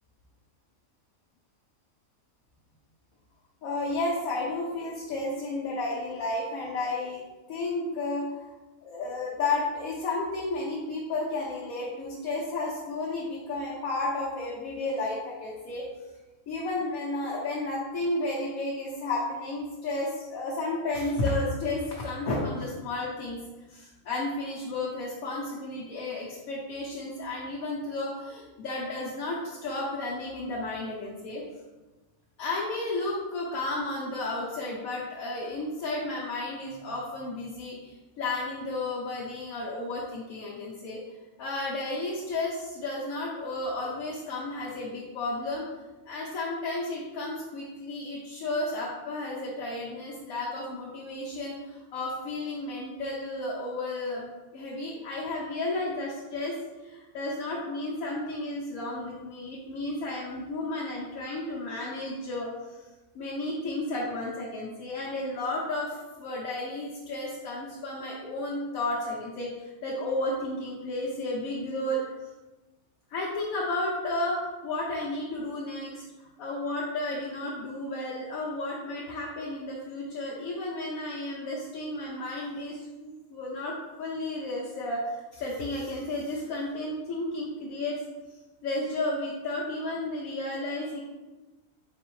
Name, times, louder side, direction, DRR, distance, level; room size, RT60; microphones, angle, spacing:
voice 1, 3.6-8.5 8.8-15.9 16.5-31.4 32.4-41.0 41.4-45.7 46.1-62.9 63.1-72.0 73.1-88.0 88.3-91.0, left 2 dB, 90° left, -5 dB, 1.2 m, -32 dB
4.1 x 4.0 x 3.1 m, 1.1 s
omnidirectional pair, 1.4 m